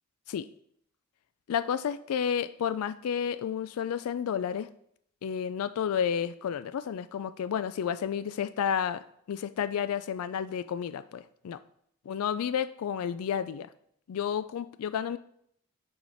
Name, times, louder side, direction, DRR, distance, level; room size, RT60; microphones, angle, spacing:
voice 1, 1.5-4.7 5.2-9.0 9.3-11.6 12.1-13.7 14.1-15.2, left 8 dB, 80° left, 14 dB, 0.3 m, -31 dB
9.4 x 4.9 x 4.0 m, 0.68 s
head